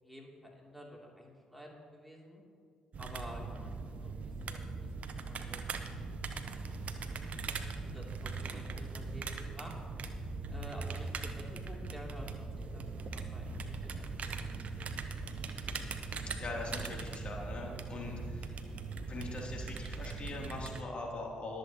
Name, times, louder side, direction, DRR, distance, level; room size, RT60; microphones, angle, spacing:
voice 1, 0.0-2.4 3.0-3.7 4.0-4.9 5.3-9.7 10.5-14.9 15.2-15.4, equal, ahead, -1 dB, 3.0 m, -51 dB
sound 1, 2.9-20.8, right 4 dB, 50° right, 0.9 m, -40 dB
voice 2, 16.4-18.5 19.1-21.6, left 2 dB, 40° left, -1 dB, 3.0 m, -41 dB
22.0 x 7.9 x 3.0 m, 2.2 s
figure-of-eight pair, 45°, 3 cm